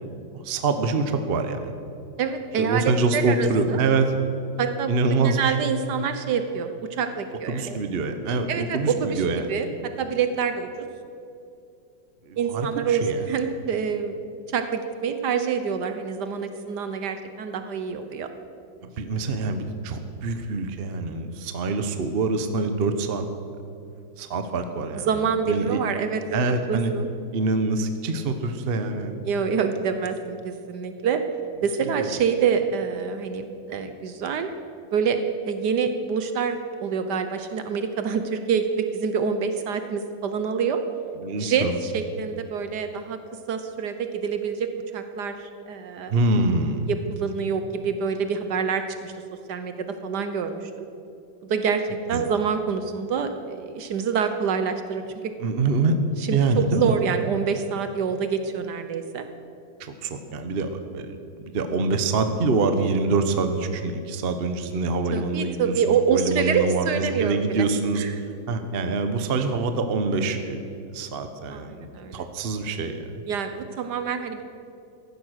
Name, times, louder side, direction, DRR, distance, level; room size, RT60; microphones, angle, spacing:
voice 1, 0.0-1.7 2.6-4.1 4.9-5.6 7.5-9.5 12.2-13.2 18.8-23.3 24.2-25.8 26.3-26.9 27.3-29.2 32.0-32.2 41.1-41.7 46.1-46.9 52.1-52.3 55.4-56.0 56.3-56.9 59.8-68.0 68.5-70.6 70.9-73.0, right 3 dB, 45° right, 8 dB, 0.8 m, -25 dB
voice 2, 2.2-3.8 4.6-4.9 5.2-7.8 8.5-9.2 9.5-9.7 10.0-10.9 12.4-14.1 14.5-18.3 25.1-26.2 26.5-27.1 29.2-31.2 31.6-34.5 34.9-35.2 35.5-40.8 41.4-43.2 43.5-45.4 45.7-46.1 46.9-49.1 49.5-50.6 51.5-51.8 52.1-55.0 56.3-59.3 65.1-67.6 68.0-68.1 71.5-72.3 73.3-74.4, right 6 dB, 65° right, 8 dB, 1.3 m, -26 dB
15.0 x 11.5 x 6.4 m, 2.6 s
omnidirectional pair, 2.1 m